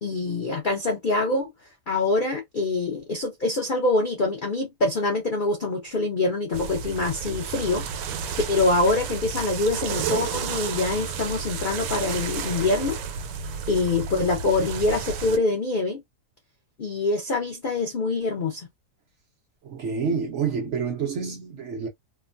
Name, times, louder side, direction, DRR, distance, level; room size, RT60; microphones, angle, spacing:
voice 1, 0.0-1.5 1.9-8.2 8.5-13.0 13.7-16.0 16.8-18.7, left 2 dB, 90° left, 0.4 m, -25 dB
sound 1, 6.5-15.4, right 6 dB, 85° right, 1.2 m, -31 dB
voice 2, 19.6-21.9, right 6 dB, 65° right, 0.7 m, -28 dB
2.9 x 2.2 x 2.5 m
omnidirectional pair, 1.8 m